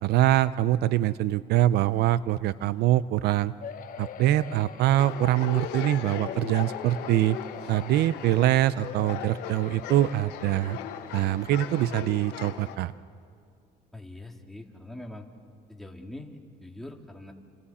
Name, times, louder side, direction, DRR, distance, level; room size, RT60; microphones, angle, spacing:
voice 1, 0.0-3.5 4.0-7.4 7.7-10.8 11.1-12.9, right 14 dB, 75° right, 17 dB, 0.5 m, -24 dB
sound 1, 3.6-5.8 6.2-8.4 8.8-11.6 12.2-12.3 12.6-12.7, left 8 dB, 55° left, 1.1 m, -44 dB
sound 2, 5.0-12.8, left 9 dB, 90° left, 1.3 m, -38 dB
voice 2, 13.9-15.3 15.7-17.3, left 1 dB, ahead, 1 dB, 2.3 m, -43 dB
29.5 x 28.0 x 4.3 m, 2.3 s
cardioid pair, 110°, 17 cm